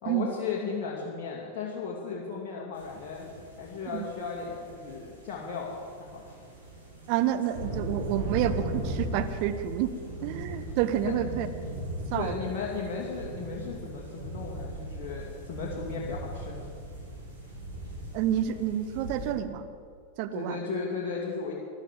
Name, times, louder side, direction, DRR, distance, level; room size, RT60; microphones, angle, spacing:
voice 1, 0.0-3.3 3.6-5.8 6.1-6.3 11.0-11.1 12.1-16.7 20.3-21.5, left 5 dB, 35° left, -4 dB, 2.5 m, -35 dB
sound 1, 2.7-19.3, right 1 dB, 85° right, 4.7 m, -38 dB
voice 2, 7.1-9.9 10.2-11.5 12.1-12.4 18.1-19.7 20.2-20.6, right 11 dB, 45° right, 9 dB, 0.9 m, -29 dB
14.0 x 12.0 x 8.2 m, 2.2 s
figure-of-eight pair, 90°, 0 cm